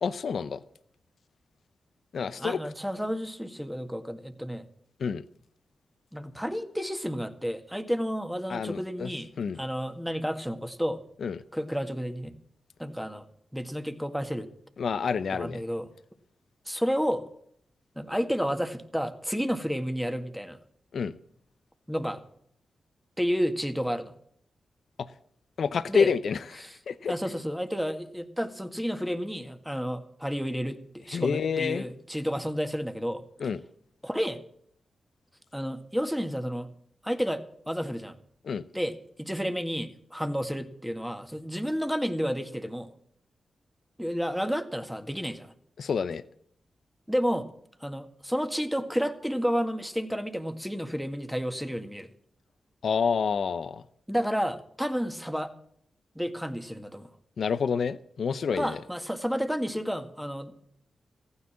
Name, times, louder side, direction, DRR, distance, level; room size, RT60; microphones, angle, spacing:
voice 1, 0.0-0.6 2.1-2.6 5.0-5.2 8.5-9.1 9.4-9.6 11.2-11.4 14.8-15.6 20.9-21.1 25.6-27.1 31.1-31.8 33.4-33.6 38.4-38.6 45.8-46.2 52.8-53.8 57.4-58.8, left 6 dB, 70° left, 15 dB, 0.7 m, -28 dB
voice 2, 2.4-4.7 6.1-9.3 9.6-11.0 11.5-12.3 12.8-13.3 13.5-14.5 15.3-15.9 16.7-17.2 18.0-20.6 21.9-22.2 23.2-24.1 25.9-26.1 26.6-26.8 27.1-30.8 31.1-33.2 34.0-34.4 35.5-36.7 37.0-38.2 38.7-42.9 44.0-45.5 47.1-47.5 47.8-52.1 54.1-55.5 56.2-57.1 58.5-60.6, equal, ahead, 7 dB, 1.9 m, -31 dB
15.0 x 9.7 x 7.3 m, 0.67 s
supercardioid pair, 45°, 0 cm